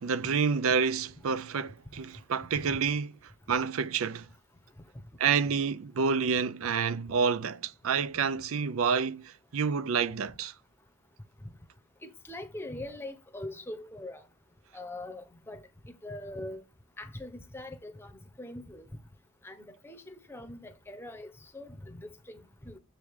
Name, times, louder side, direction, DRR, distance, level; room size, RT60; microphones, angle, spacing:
voice 1, 0.0-3.1 3.5-4.3 5.2-10.5, right 6 dB, 75° right, 0.5 m, -28 dB
voice 2, 12.0-14.2 14.7-16.6 17.0-18.9 19.4-22.8, left 1 dB, 10° left, 0.8 m, -42 dB
7.3 x 4.7 x 3.6 m
head